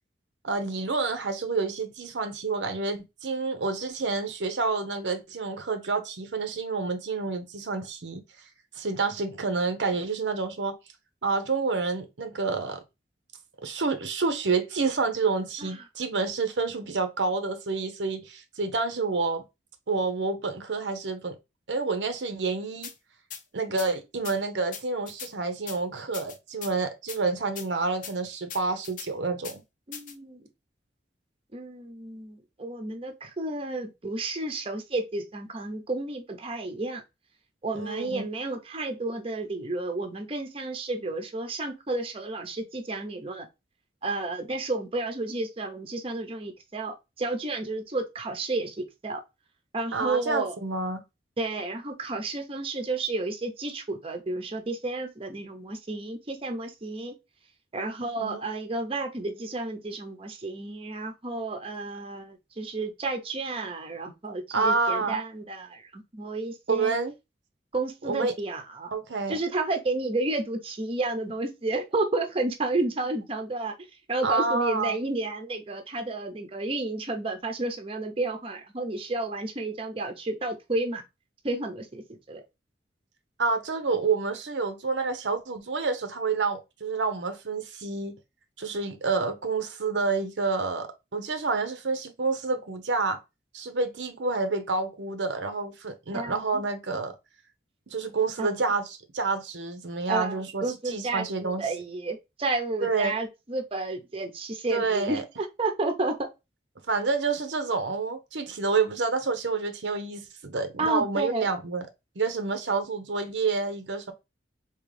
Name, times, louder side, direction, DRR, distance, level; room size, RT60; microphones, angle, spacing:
voice 1, 0.4-8.2 8.8-10.7 11.2-12.8 13.6-19.4 19.9-21.4 21.7-22.9 23.5-29.6 37.7-38.3 49.9-51.0 58.0-58.4 64.5-65.2 66.7-67.1 68.1-68.3 68.9-69.4 74.2-75.0 83.4-88.2 88.6-93.2 93.5-97.1 97.9-101.6 102.8-103.1 104.7-105.2 106.9-111.9 112.2-114.1, right 4 dB, 85° right, 0.7 m, -28 dB
sound 1, 22.8-22.9 23.3-23.4 23.8-23.9 24.2-24.4 24.7-25.3 25.7-25.8 26.1-26.7 27.1-27.2 27.6-27.7 28.0-28.1 28.5-29.1 29.4-29.6 29.9-30.1, left 7 dB, 50° left, 0.6 m, -39 dB
voice 2, 29.9-30.5 31.5-37.0 37.6-43.5 44.0-48.8 49.0-49.2 49.7-50.5 51.4-57.1 57.7-67.0 67.7-68.9 69.3-73.7 74.1-81.0 81.4-82.4 96.1-96.6 98.4-98.6 100.1-106.3 110.8-111.5, right 2 dB, 30° right, 0.7 m, -31 dB
3.6 x 2.9 x 3.2 m
head